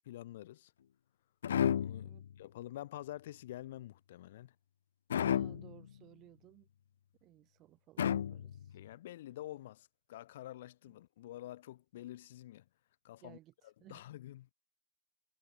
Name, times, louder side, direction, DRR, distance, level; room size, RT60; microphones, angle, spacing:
voice 1, 0.1-0.7 1.8-4.5 8.7-12.6 13.0-13.4 13.6-14.5, left 14 dB, 50° left, 2.9 m, -48 dB
sound 1, 1.4-2.3 5.1-5.9 8.0-8.8, left 9 dB, 80° left, 0.8 m, -32 dB
voice 2, 5.2-6.7 7.2-8.8 10.9-11.0 13.2-14.1, right 15 dB, 20° right, 4.0 m, -59 dB
supercardioid pair, 170°, 0 cm